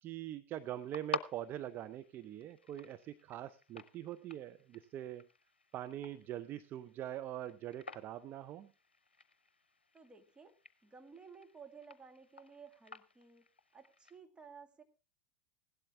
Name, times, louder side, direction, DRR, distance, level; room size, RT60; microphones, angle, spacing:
voice 1, 0.0-5.3 5.7-8.7, right 12 dB, 40° right, 13 dB, 0.6 m, -43 dB
sound 1, 0.6-14.2, left 4 dB, 85° left, 0.6 m, -50 dB
voice 2, 9.9-10.6 10.8-13.5 13.7-14.8, right 5 dB, 15° right, 6 dB, 1.9 m, -55 dB
16.5 x 12.0 x 3.5 m, 0.31 s
figure-of-eight pair, 85°, 6 cm